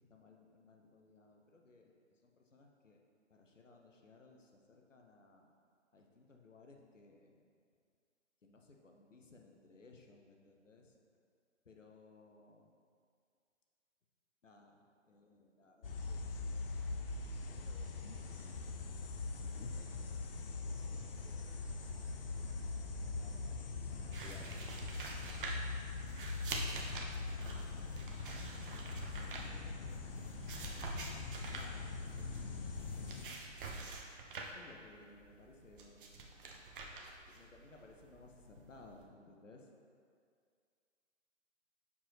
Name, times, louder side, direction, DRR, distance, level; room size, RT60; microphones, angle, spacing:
voice 1, 0.0-1.9 2.2-3.0 3.3-5.5 5.9-7.4 8.4-10.9 11.7-12.7 14.4-17.2 17.5-19.1 19.4-20.0 20.6-21.7 22.4-25.7 27.4-28.2 29.2-30.2 31.5-32.5 34.5-36.2 37.3-39.7, left 3 dB, 85° left, 1 dB, 0.9 m, -61 dB
sound 1, 15.8-33.3, left 3 dB, 50° left, 0.6 m, -42 dB
sound 2, 24.1-39.0, right 3 dB, 45° right, 0.8 m, -47 dB
6.8 x 4.6 x 3.3 m, 2.2 s
figure-of-eight pair, 130°, 37 cm